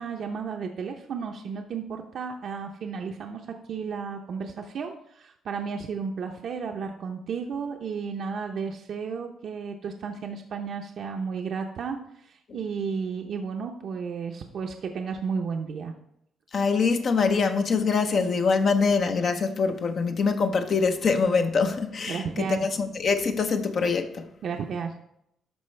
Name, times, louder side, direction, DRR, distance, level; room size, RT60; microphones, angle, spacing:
voice 1, 0.0-15.9 22.1-22.6 24.4-25.0, right 5 dB, 65° right, 0.7 m, -33 dB
voice 2, 16.5-24.3, left 5 dB, 55° left, 0.7 m, -24 dB
12.5 x 4.4 x 3.3 m
cardioid pair, 90°, 0 cm